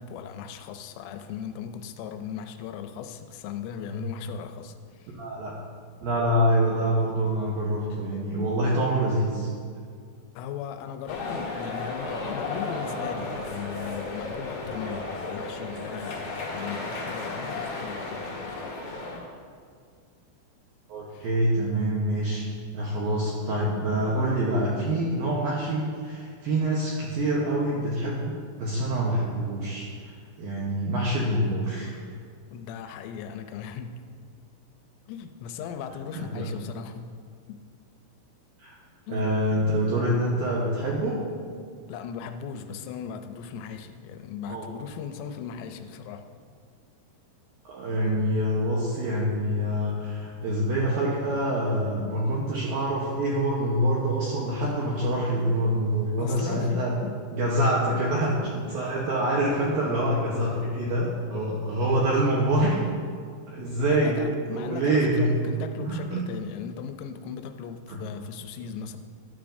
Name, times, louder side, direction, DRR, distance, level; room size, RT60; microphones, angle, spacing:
voice 1, 0.0-5.2 10.4-18.8 21.1-21.3 32.5-34.2 35.1-37.2 37.5-37.6 39.1-39.3 41.9-46.3 56.2-57.2 63.8-69.0, left 7 dB, 85° left, 7 dB, 3.2 m, -38 dB
voice 2, 5.1-5.5 6.0-9.5 20.9-22.5 22.7-28.3 28.6-32.0 36.1-36.5 38.6-38.8 39.1-41.2 44.5-44.7 47.7-57.0 57.3-62.8 63.5-64.2 64.5-65.5 65.8-66.3 67.9-68.0, right 1 dB, 80° right, -4 dB, 2.1 m, -26 dB
sound 1, 11.1-19.2, left 3 dB, 60° left, 1.8 m, -34 dB
12.0 x 12.0 x 2.6 m, 2.1 s
omnidirectional pair, 5.7 m